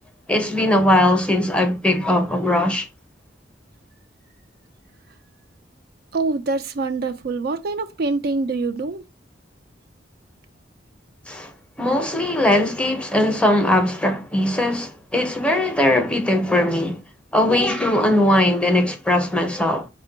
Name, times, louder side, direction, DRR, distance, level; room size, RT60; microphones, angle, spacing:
voice 1, 0.3-2.9 11.3-11.5 11.8-17.0 17.3-19.9, left 1 dB, 5° left, 0.6 m, -19 dB
voice 2, 6.1-9.0, right 3 dB, 55° right, 0.4 m, -25 dB
4.3 x 2.2 x 3.8 m
head